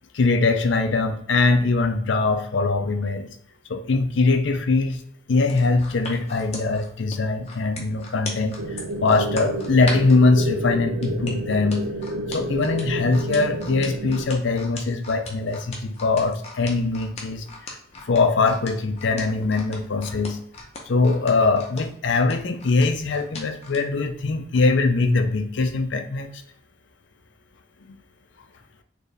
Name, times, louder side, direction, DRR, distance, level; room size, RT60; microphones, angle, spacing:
voice 1, 0.1-3.3 3.7-5.0 5.3-11.8 12.3-17.4 18.0-20.4 20.9-26.3, left 3 dB, 65° left, 7 dB, 0.5 m, -22 dB
sound 1, 5.4-10.2 11.0-23.8 24.3-24.4, left 3 dB, 30° left, 0.7 m, -38 dB
sound 2, 8.6-14.2, right 1 dB, 75° right, 0.4 m, -30 dB
4.2 x 2.7 x 3.3 m, 0.67 s
head